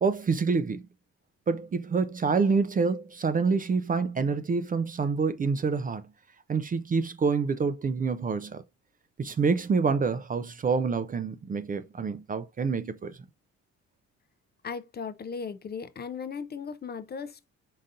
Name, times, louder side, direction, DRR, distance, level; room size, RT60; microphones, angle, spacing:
voice 1, 0.0-0.9 1.5-6.0 6.5-8.6 9.2-13.2, right 5 dB, 30° right, 0.4 m, -27 dB
voice 2, 14.6-17.5, left 6 dB, 35° left, 0.5 m, -37 dB
4.0 x 3.8 x 2.5 m
cardioid pair, 90°, 30 cm